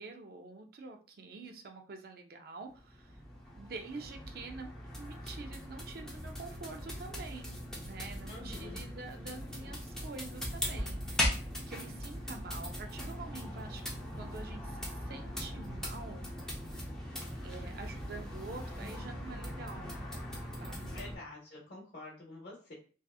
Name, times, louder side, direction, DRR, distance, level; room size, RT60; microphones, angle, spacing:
voice 1, 0.0-3.2 3.5-7.6 7.8-11.4 11.7-13.8 14.1-16.2 17.4-19.9 20.6-21.0, right 3 dB, 55° right, 4 dB, 0.4 m, -47 dB
sound 1, 2.7-21.2, left 1 dB, 5° left, 0.5 m, -40 dB
voice 2, 8.3-8.8 20.9-22.7, left 2 dB, 60° left, -5 dB, 0.8 m, -47 dB
2.7 x 2.3 x 2.3 m, 0.39 s
head